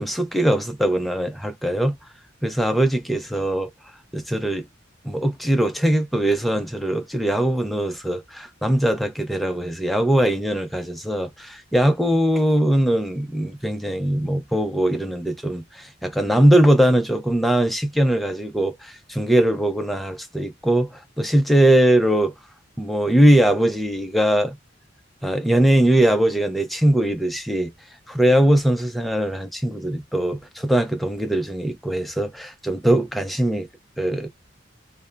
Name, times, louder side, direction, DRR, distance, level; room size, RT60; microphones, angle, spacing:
voice 1, 0.0-2.0 2.4-3.7 4.1-4.6 5.0-22.3 22.8-24.6 25.2-27.7 28.1-33.7 34.0-34.3, right 1 dB, ahead, 0.6 m, -21 dB
2.6 x 2.2 x 3.3 m
head